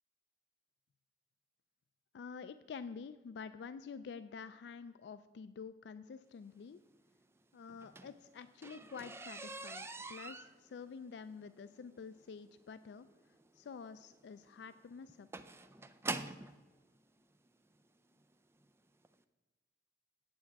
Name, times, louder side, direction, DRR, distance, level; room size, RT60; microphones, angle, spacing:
voice 1, 2.1-6.8 7.5-13.1 13.5-15.3, left 5 dB, 70° left, 13 dB, 0.3 m, -48 dB
sound 1, 7.7-16.6 17.5-17.6 18.1-18.3 18.6-18.7 19.0-19.1, right 3 dB, 15° right, 0.3 m, -45 dB
8.7 x 8.4 x 4.6 m, 1.3 s
head